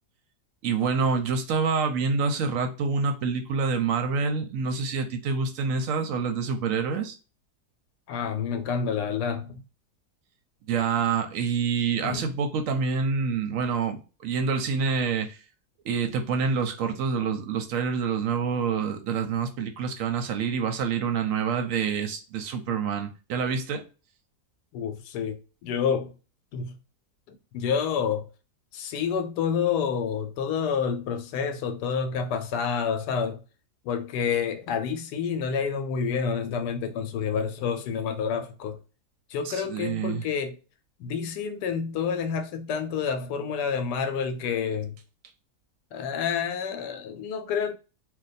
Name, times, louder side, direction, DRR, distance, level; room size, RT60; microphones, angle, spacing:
voice 1, 0.6-7.2 10.7-15.4 15.8-23.8 39.4-40.2, right 5 dB, 65° right, 0.9 m, -27 dB
voice 2, 8.1-9.6 12.0-12.3 24.7-26.1 26.5-26.8 27.3-28.2 28.7-33.4 33.8-38.8 39.3-40.6 41.0-44.9 45.9-47.7, left 6 dB, 80° left, 1.1 m, -28 dB
2.6 x 2.2 x 4.0 m
omnidirectional pair, 1.7 m